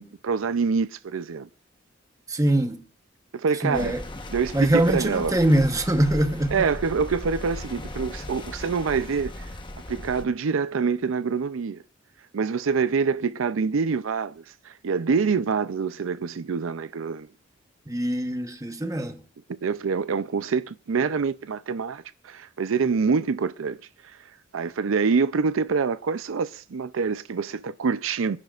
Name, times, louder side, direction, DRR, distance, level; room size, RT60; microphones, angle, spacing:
voice 1, 0.0-1.5 3.3-4.0 4.3-5.4 6.5-9.5 9.9-11.8 12.3-17.3 19.6-23.8 24.5-28.4, right 5 dB, 80° right, 0.5 m, -26 dB
voice 2, 2.3-2.8 3.6-4.0 4.5-6.7 17.9-19.2, right 1 dB, 15° right, 1.0 m, -23 dB
sound 1, 3.7-10.2, left 1 dB, 25° left, 1.0 m, -37 dB
25.0 x 10.5 x 2.4 m
head